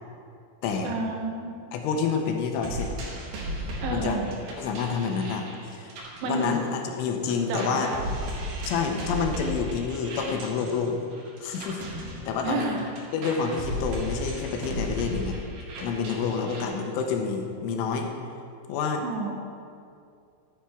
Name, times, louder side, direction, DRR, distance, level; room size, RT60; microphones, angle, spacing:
voice 1, 0.8-1.6 3.8-4.3 6.2-6.6 7.5-8.1 12.4-12.9 19.0-19.3, right 3 dB, 75° right, 1 dB, 3.0 m, -30 dB
voice 2, 1.7-2.9 3.9-4.2 4.6-5.9 6.2-7.9 8.7-11.0 11.4-12.7 13.1-15.4 15.8-18.1 18.7-19.0, left 5 dB, 80° left, 3 dB, 3.2 m, -28 dB
sound 1, 2.6-7.0 7.3-16.6, right 1 dB, 60° right, 2.9 m, -35 dB
14.5 x 8.9 x 3.5 m, 2.4 s
omnidirectional pair, 5.8 m